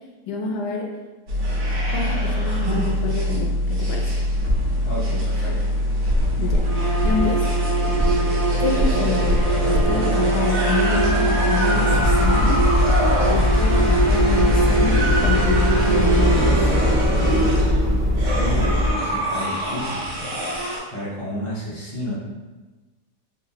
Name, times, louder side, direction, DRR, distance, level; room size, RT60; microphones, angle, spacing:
voice 1, 0.3-0.9 1.9-3.5 3.8-4.0 6.4-6.7 7.0-7.4 8.6-12.6 13.3-16.6, left 4 dB, 80° left, 1 dB, 1.1 m, -27 dB
sound 1, 1.3-20.8, equal, 60° right, 1.2 m, -22 dB
voice 2, 4.8-5.6 18.3-20.2 20.9-22.1, left 1 dB, 40° left, -8 dB, 0.4 m, -31 dB
sound 2, 6.6-16.9, right 3 dB, 80° right, 1.2 m, -25 dB
sound 3, 11.9-18.9, left 1 dB, 30° right, 1.5 m, -22 dB
4.0 x 2.3 x 2.8 m, 1.2 s
omnidirectional pair, 1.7 m